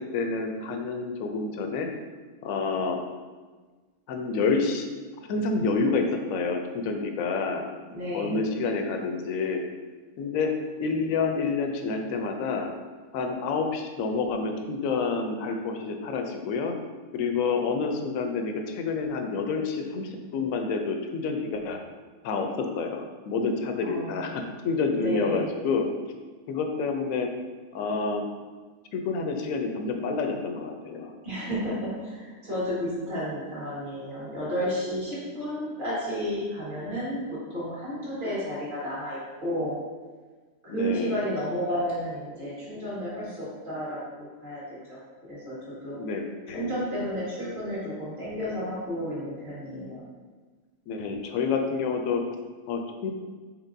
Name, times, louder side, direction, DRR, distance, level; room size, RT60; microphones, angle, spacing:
voice 1, 0.0-1.9 2.4-3.0 4.1-4.9 5.3-7.7 8.1-9.6 10.2-10.5 10.8-12.7 13.1-16.7 17.1-21.8 22.2-25.9 26.5-27.3 27.7-28.2 28.9-31.1 40.7-41.2 45.9-46.8 50.9-52.2 52.7-53.1, left 4 dB, 75° left, 4 dB, 0.9 m, -28 dB
voice 2, 7.9-8.5 23.8-24.5 24.9-25.5 31.2-39.8 40.6-45.0 45.3-46.2 46.5-50.0, equal, 35° right, -8 dB, 1.8 m, -32 dB
4.4 x 4.3 x 2.6 m, 1.4 s
omnidirectional pair, 1.5 m